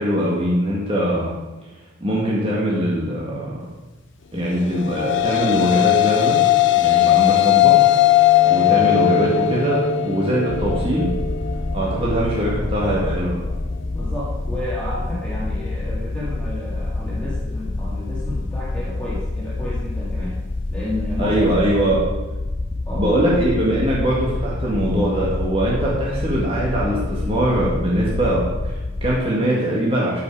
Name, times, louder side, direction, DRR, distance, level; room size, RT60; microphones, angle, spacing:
voice 1, 0.0-1.3 2.0-3.6 4.3-6.4 6.8-7.8 8.4-11.1 11.7-13.4 21.2-22.0 22.9-30.2, equal, 30° right, -5 dB, 2.0 m, -21 dB
sound 1, 4.7-13.2, left 12 dB, 65° left, 0.6 m, -18 dB
sound 2, 10.5-29.2, left 2 dB, 25° left, 0.3 m, -27 dB
voice 2, 13.9-20.4 20.7-21.4 21.7-21.9 22.9-23.2, left 1 dB, 5° left, -8 dB, 2.0 m, -31 dB
14.0 x 5.9 x 4.9 m, 1.1 s
head